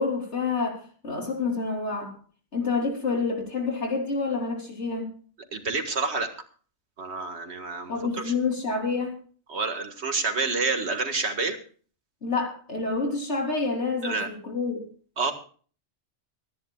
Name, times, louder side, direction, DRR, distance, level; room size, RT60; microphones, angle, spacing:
voice 1, 0.0-2.2 2.5-5.2 7.9-9.2 12.2-14.9, left 4 dB, 75° left, 1 dB, 3.6 m, -28 dB
voice 2, 5.5-6.3 7.0-8.3 9.5-11.6 14.0-14.3 15.2-15.3, right 4 dB, 70° right, 6 dB, 2.0 m, -28 dB
25.5 x 10.5 x 2.3 m, 0.42 s
omnidirectional pair, 1.2 m